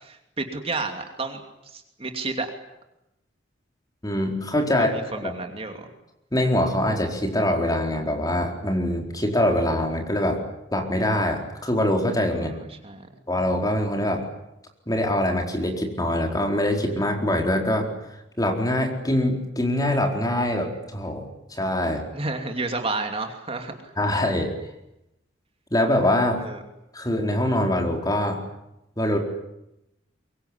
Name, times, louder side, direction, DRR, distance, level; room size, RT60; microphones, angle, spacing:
voice 1, 0.0-2.5 4.8-5.9 12.4-13.1 22.1-23.7 26.4-26.6, right 3 dB, 30° right, 5 dB, 2.8 m, -31 dB
voice 2, 4.0-4.9 5.2-5.3 6.3-10.4 10.7-12.6 13.3-14.2 14.9-17.9 18.4-21.2 21.5-22.0 24.0-24.5 25.7-26.4 26.9-28.4 29.0-29.2, left 1 dB, 20° left, 2 dB, 4.4 m, -23 dB
24.0 x 23.5 x 10.0 m, 0.87 s
head